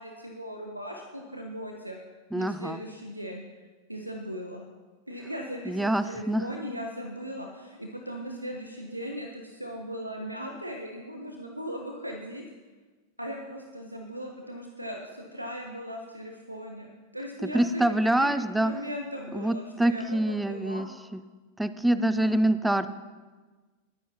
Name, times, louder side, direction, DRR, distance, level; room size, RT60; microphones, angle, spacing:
voice 1, 0.0-2.0 2.3-3.4 3.9-4.7 5.1-12.4 13.2-17.8 18.2-18.3 18.6-20.9 21.9-22.4, equal, 85° right, 2 dB, 0.9 m, -38 dB
voice 2, 2.3-2.8 5.7-6.5 17.5-18.7 19.3-20.9 21.1-21.2 21.6-22.9, right 1 dB, 5° right, 13 dB, 0.5 m, -25 dB
21.0 x 9.3 x 2.8 m, 1.3 s
figure-of-eight pair, 90°, 0 cm